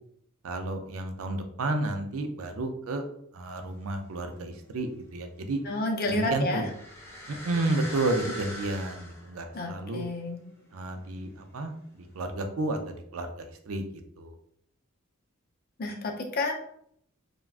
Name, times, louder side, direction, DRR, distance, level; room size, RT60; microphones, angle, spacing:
voice 1, 0.4-3.0 3.3-5.6 6.1-6.7 7.3-10.0 10.7-13.8 14.2-14.4, right 2 dB, 70° right, 5 dB, 0.4 m, -31 dB
sound 1, 3.6-4.4 4.7-11.8 12.3-12.4, left 1 dB, 15° left, 0.7 m, -43 dB
voice 2, 5.7-6.6 9.5-10.4 15.8-16.6, left 2 dB, 45° left, 2 dB, 0.5 m, -30 dB
3.4 x 2.2 x 2.4 m, 0.68 s
head